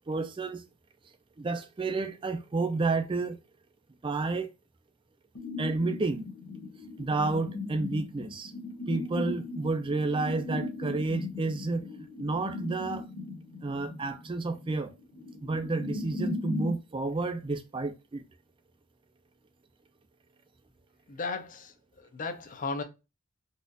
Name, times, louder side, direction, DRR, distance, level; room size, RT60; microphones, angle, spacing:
voice 1, 0.1-0.6 1.4-3.4 4.0-4.5 5.6-6.3 7.0-8.5 8.9-11.8 12.2-13.1 13.6-14.9 15.4-18.2, right 3 dB, 25° right, 0.4 m, -30 dB
sound 1, 5.3-16.8, left 3 dB, 75° left, 0.8 m, -38 dB
voice 2, 21.1-22.8, left 4 dB, 40° left, 0.5 m, -36 dB
4.1 x 2.4 x 2.5 m
head